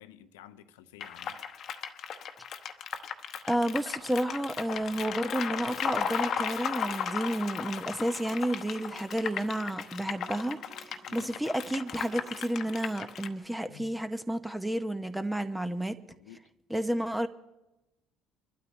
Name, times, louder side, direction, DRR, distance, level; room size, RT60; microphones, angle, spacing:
voice 1, 0.0-1.4 11.1-11.3 13.7-13.9 16.1-16.4, left 11 dB, 75° left, 0.7 m, -51 dB
sound 1, 1.0-13.3, left 7 dB, 50° left, 1.0 m, -36 dB
voice 2, 3.5-16.0 16.7-17.3, right 1 dB, 5° right, 0.8 m, -31 dB
sound 2, 6.5-13.4, right 4 dB, 65° right, 2.2 m, -57 dB
24.0 x 12.0 x 3.1 m
hypercardioid pair, 60°, 0 cm